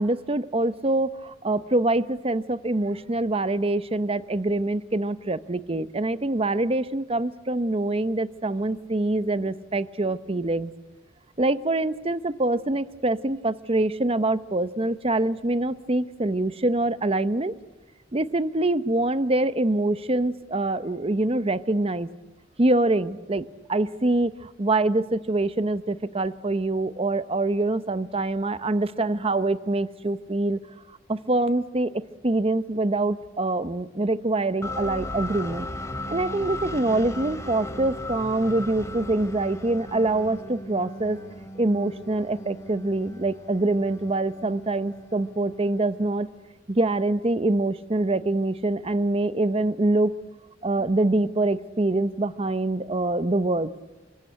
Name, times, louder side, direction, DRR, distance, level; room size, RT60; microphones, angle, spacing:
voice 1, 0.0-10.7 11.4-17.5 18.1-22.1 22.6-30.6 31.1-35.7 36.1-41.2 41.6-46.3 46.7-50.1 50.6-53.7, right 2 dB, 30° right, 13 dB, 0.8 m, -25 dB
sound 1, 34.6-46.4, left 1 dB, 15° left, 2.8 m, -37 dB
28.0 x 25.0 x 8.0 m, 1.1 s
head